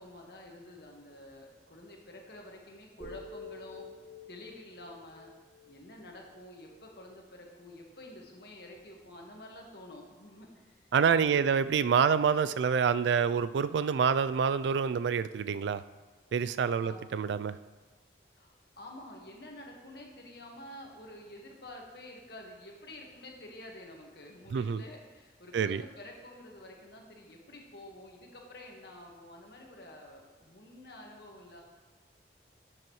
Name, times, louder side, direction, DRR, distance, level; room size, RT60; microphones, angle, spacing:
voice 1, 0.0-3.9 4.3-5.3 5.6-10.9 11.2-11.6 16.8-17.0 18.3-31.6, left 1 dB, 60° left, 0 dB, 1.5 m, -49 dB
sound 1, 3.0-7.1, left 3 dB, 5° left, 2.4 m, -49 dB
voice 2, 10.9-15.8 16.3-17.6 24.5-24.8 25.5-25.8, right 6 dB, 75° right, 14 dB, 0.3 m, -27 dB
11.5 x 7.6 x 3.1 m, 1.3 s
head